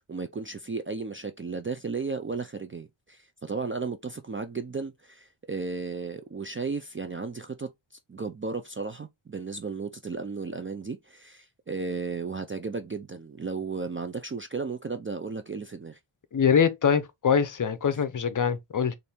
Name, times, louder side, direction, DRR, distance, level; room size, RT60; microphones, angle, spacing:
voice 1, 0.0-7.7 8.1-16.0 17.9-18.0, right 4 dB, 30° right, 0.3 m, -34 dB
voice 2, 16.3-19.0, left 7 dB, 40° left, 0.6 m, -24 dB
4.2 x 2.6 x 3.4 m
wide cardioid pair, 110°, 50 cm